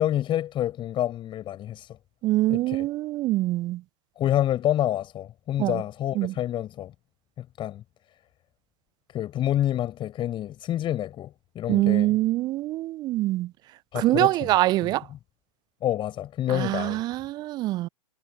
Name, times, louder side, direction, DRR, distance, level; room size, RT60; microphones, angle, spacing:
voice 1, 0.0-2.0 2.5-2.9 4.2-6.9 7.4-7.8 9.1-12.2 13.9-14.6 15.8-17.0, left 12 dB, 25° left, 7.0 m, -28 dB
voice 2, 2.2-3.8 5.6-5.8 6.2-6.3 11.7-13.5 13.9-15.0 16.5-17.9, right 16 dB, 20° right, 0.5 m, -24 dB
figure-of-eight pair, 105°, 19 cm